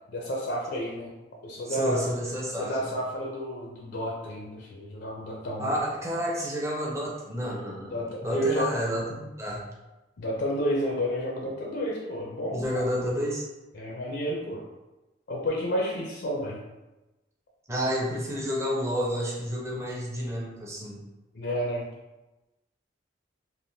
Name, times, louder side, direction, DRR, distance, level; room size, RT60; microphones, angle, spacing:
voice 1, 0.1-1.1 1.4-2.1 2.5-5.7 7.9-8.8 10.2-12.8 13.7-14.6 15.3-16.6 21.3-21.9, equal, 60° left, -2 dB, 0.5 m, -30 dB
voice 2, 1.7-2.9 5.6-9.6 12.5-13.5 17.7-21.0, equal, 15° right, -4 dB, 0.6 m, -30 dB
3.4 x 2.5 x 2.6 m, 1.1 s
head